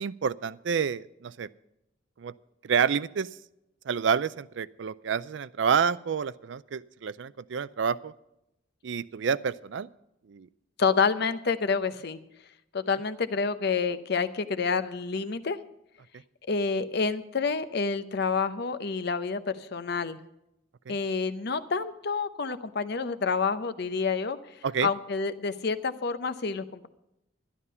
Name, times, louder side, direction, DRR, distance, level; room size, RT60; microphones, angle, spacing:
voice 1, 0.0-1.5 2.2-2.3 2.6-3.3 3.9-8.1 8.8-9.9 10.3-10.5 20.9-21.0 24.6-24.9, right 6 dB, 70° right, 18 dB, 0.4 m, -28 dB
voice 2, 10.8-12.2 12.7-15.6 16.5-19.4 19.7-20.2 20.9-24.4 24.8-26.9, left 5 dB, 60° left, 12 dB, 0.7 m, -28 dB
12.0 x 11.0 x 5.5 m, 0.85 s
head